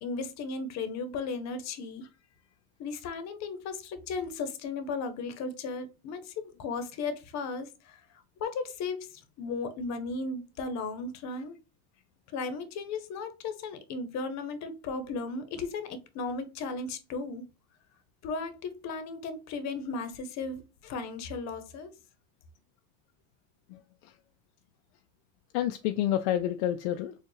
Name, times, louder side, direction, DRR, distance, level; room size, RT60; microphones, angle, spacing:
voice 1, 0.0-2.1 2.8-8.0 8.4-11.6 12.3-17.4 18.2-21.9, left 4 dB, 50° left, 0.9 m, -36 dB
voice 2, 23.7-24.1 25.5-27.1, left 12 dB, 75° left, 0.5 m, -29 dB
4.4 x 2.4 x 3.1 m
supercardioid pair, 115°, 35 cm